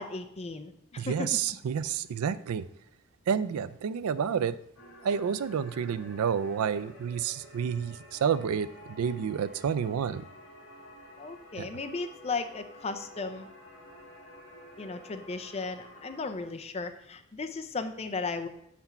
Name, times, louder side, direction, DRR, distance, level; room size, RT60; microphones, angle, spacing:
voice 1, 0.0-1.4 11.2-13.5 14.8-18.5, left 4 dB, 30° left, 8 dB, 0.5 m, -36 dB
voice 2, 1.0-2.7 3.3-4.6 5.0-10.2 11.6-11.7, right 7 dB, 85° right, 14 dB, 0.4 m, -29 dB
sound 1, 4.8-16.4, left 1 dB, 80° left, 1.9 m, -51 dB
5.9 x 4.3 x 5.7 m, 0.75 s
head